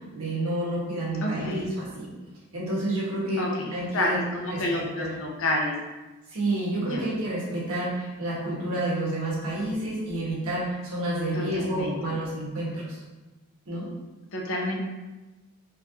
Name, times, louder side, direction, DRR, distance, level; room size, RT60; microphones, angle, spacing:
voice 1, 0.0-2.1 2.5-4.2 4.5-5.1 6.3-13.0 13.7-13.9, right 1 dB, 70° right, -6 dB, 1.4 m, -29 dB
voice 2, 1.2-1.7 3.4-5.8 6.7-7.1 11.3-12.0 14.3-14.8, left 1 dB, 65° left, 0 dB, 0.8 m, -29 dB
4.5 x 3.1 x 2.7 m, 1.2 s
head